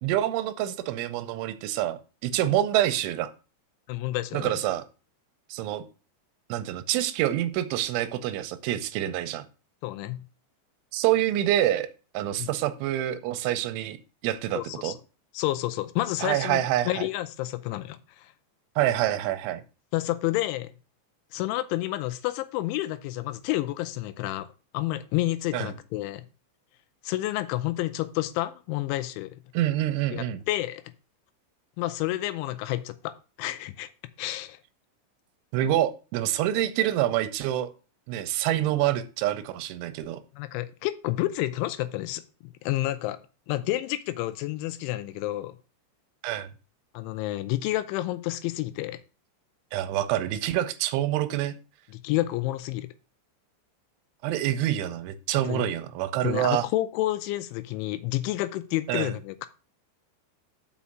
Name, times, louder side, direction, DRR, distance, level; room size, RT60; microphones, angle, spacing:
voice 1, 0.0-3.3 4.3-4.8 5.5-5.8 6.5-9.5 10.9-11.9 12.1-14.0 14.2-15.0 16.2-17.0 18.8-19.6 25.5-25.7 29.5-30.4 35.5-37.7 38.1-40.2 46.2-46.5 49.7-51.6 54.2-56.7 58.9-59.1, right 13 dB, 90° right, 11 dB, 3.1 m, -26 dB
voice 2, 3.9-4.5 9.8-10.2 12.4-12.5 14.5-14.9 15.3-18.3 19.9-20.7 21.3-24.5 24.7-26.3 27.0-29.4 30.1-30.8 31.8-33.9 34.2-34.6 40.3-43.2 43.5-45.6 46.9-49.0 52.0-52.9 55.5-55.7 56.2-59.5, left 16 dB, 85° left, 12 dB, 3.0 m, -30 dB
6.3 x 5.7 x 7.2 m, 0.33 s
omnidirectional pair, 5.5 m